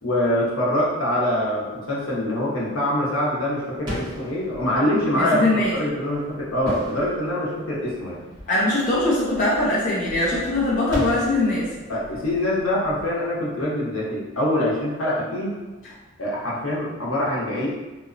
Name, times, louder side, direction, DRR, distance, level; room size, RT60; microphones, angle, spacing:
voice 1, 0.0-8.2 11.9-15.6 16.2-17.7, left 1 dB, 80° left, -5 dB, 0.7 m, -24 dB
sound 1, 3.8-14.4, equal, 25° right, 1.0 m, -38 dB
voice 2, 5.2-5.8 8.5-11.7, left 2 dB, 40° left, -6 dB, 0.4 m, -21 dB
2.8 x 2.0 x 2.5 m, 1.2 s
head